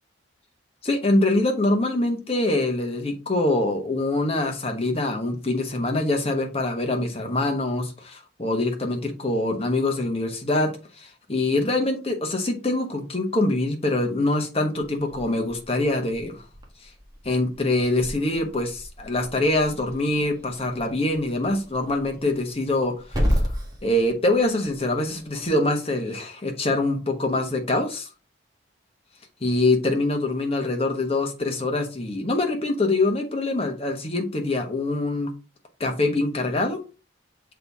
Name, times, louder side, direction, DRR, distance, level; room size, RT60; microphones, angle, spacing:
voice 1, 0.8-10.7 11.0-16.4 17.2-23.5 23.8-28.1 29.4-35.3 35.8-36.8, left 2 dB, 30° left, 3 dB, 1.1 m, -24 dB
Growling / Hiss, 14.7-25.5, equal, 20° right, 1.4 m, -33 dB
6.6 x 4.1 x 3.5 m, 0.33 s
head